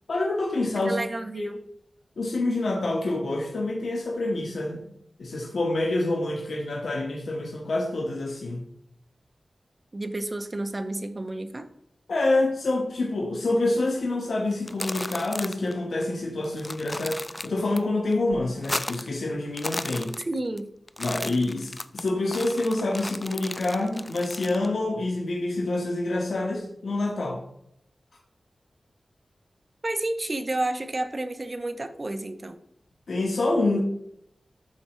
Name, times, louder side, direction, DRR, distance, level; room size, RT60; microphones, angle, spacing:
voice 1, 0.1-1.0 1.3-1.5 2.2-4.9 5.2-8.6 12.1-20.2 21.0-27.4 33.1-33.8, left 2 dB, 85° left, -1 dB, 1.2 m, -27 dB
voice 2, 0.8-1.6 9.9-11.7 20.2-20.7 29.8-32.6, right 2 dB, 35° right, 9 dB, 0.6 m, -31 dB
sound 1, 14.5-15.7 16.0-16.1 16.4-17.8 18.1-19.2 19.5-20.6 20.9-24.7, left 1 dB, 25° left, 0.3 m, -35 dB
12.0 x 4.3 x 3.1 m, 0.74 s
wide cardioid pair, 100°, 0 cm